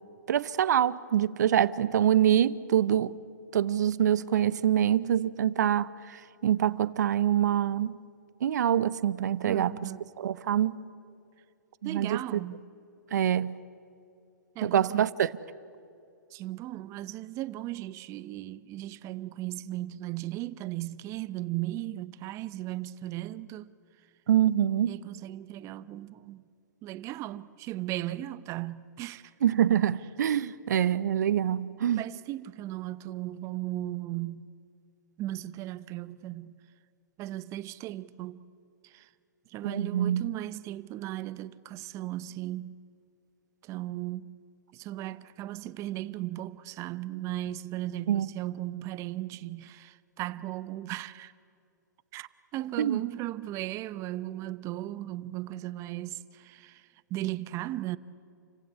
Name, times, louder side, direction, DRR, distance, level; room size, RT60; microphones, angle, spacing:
voice 1, 0.3-3.1 3.5-6.2 6.4-8.0 8.4-9.7 10.2-10.8 11.8-12.4 13.1-13.5 14.6-15.3 24.3-25.0 29.4-32.0 39.6-40.2 48.1-48.3 52.8-53.0, right 10 dB, 65° right, 0.8 m, -25 dB
voice 2, 9.4-10.1 11.8-12.6 14.5-15.1 16.3-23.7 24.9-26.4 26.8-29.3 32.0-34.5 35.2-36.5 37.2-38.4 38.8-39.1 39.5-42.7 43.6-44.3 44.7-51.3 52.1-58.0, right 15 dB, 30° right, 0.7 m, -36 dB
29.0 x 16.0 x 10.0 m
hypercardioid pair, 120°, 10 cm